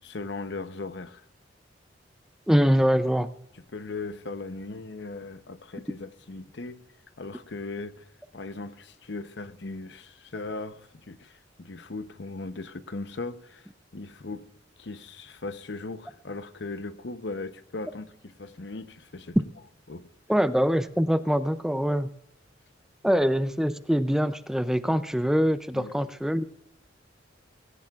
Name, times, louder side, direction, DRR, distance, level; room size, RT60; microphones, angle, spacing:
voice 1, 0.0-1.2 3.5-6.8 7.2-8.1 8.3-13.7 13.9-14.4 14.8-19.4 19.9-20.1 23.1-23.2 25.7-25.9, left 3 dB, 65° left, 0.8 m, -38 dB
voice 2, 2.5-3.3 20.3-22.1 23.0-26.4, equal, 5° right, 0.4 m, -24 dB
20.0 x 17.0 x 2.4 m
head